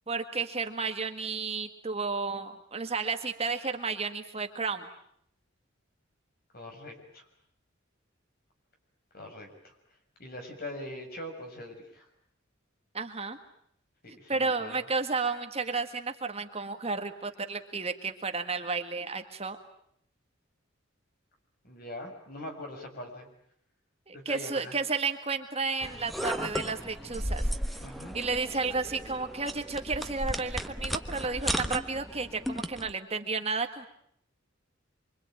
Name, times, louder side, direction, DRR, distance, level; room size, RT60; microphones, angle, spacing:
voice 1, 0.1-4.9 12.9-13.4 14.3-19.6 24.1-27.5 28.1-33.9, right 4 dB, 30° right, 6 dB, 1.7 m, -32 dB
voice 2, 6.5-7.3 9.1-9.7 10.2-12.0 14.0-14.8 21.6-23.3 24.1-24.7 27.8-28.2, left 1 dB, 50° left, 4 dB, 6.3 m, -42 dB
sound 1, 25.8-32.9, equal, ahead, 1.1 m, -35 dB
26.0 x 25.0 x 9.0 m, 0.69 s
head